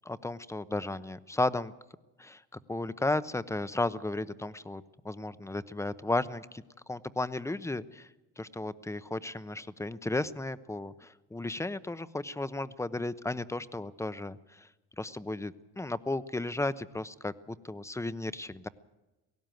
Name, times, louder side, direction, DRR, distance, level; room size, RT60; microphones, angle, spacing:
voice 1, 0.0-1.7 2.2-2.4 2.7-6.6 6.9-8.1 8.4-14.7 15.0-18.7, left 2 dB, 10° left, 15 dB, 0.8 m, -34 dB
18.0 x 16.5 x 9.2 m, 1.1 s
cardioid pair, 90°, 30 cm